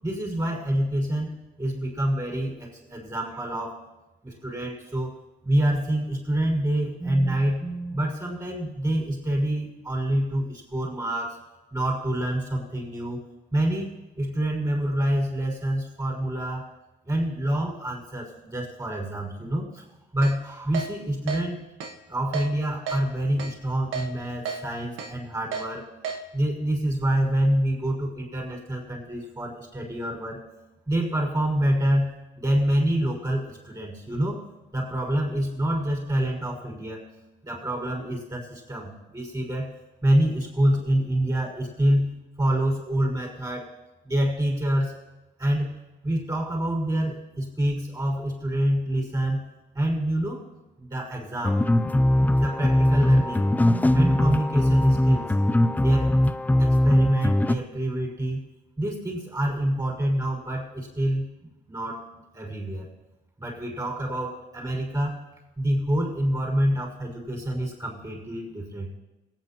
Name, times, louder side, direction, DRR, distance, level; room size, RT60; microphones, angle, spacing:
voice 1, 0.0-3.8 4.2-5.2 5.4-11.4 11.7-13.2 13.5-16.7 17.0-19.8 20.1-21.6 22.1-25.9 26.3-30.4 30.9-34.4 34.7-37.0 37.4-39.7 40.0-43.8 44.0-45.0 45.4-45.8 46.0-49.5 49.7-50.4 50.8-51.6 52.3-55.3 55.8-56.1 56.6-58.4 58.8-61.3 61.7-62.9 63.4-65.2 65.6-68.9, right 1 dB, 20° right, -2 dB, 5.4 m, -26 dB
Keyboard (musical), 20.2-20.3 20.7-20.9 21.3-21.4 21.8-21.9 22.3-22.5 22.9-23.0 23.4-23.5 23.9-24.1 24.5-24.6 25.0-25.1 25.5-25.7 26.0-26.2, right 6 dB, 85° right, 1.4 m, -31 dB
sound 1, 51.4-57.6, left 1 dB, 10° left, 0.4 m, -21 dB
22.0 x 9.0 x 3.0 m, 1.0 s
cardioid pair, 90°, 20 cm